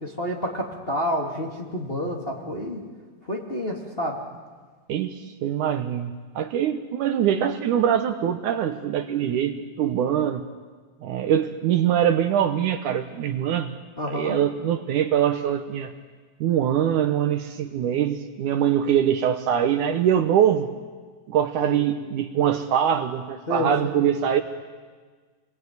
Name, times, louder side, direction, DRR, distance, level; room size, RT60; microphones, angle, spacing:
voice 1, 0.0-2.8 3.3-4.2 14.0-14.4 21.6-21.8 23.5-23.7, equal, 20° left, -2 dB, 2.4 m, -29 dB
voice 2, 4.9-10.4 11.0-13.7 14.0-15.9 16.4-20.7 21.3-24.4, right 9 dB, 70° right, 8 dB, 2.2 m, -23 dB
28.0 x 21.5 x 9.5 m, 1.5 s
omnidirectional pair, 4.0 m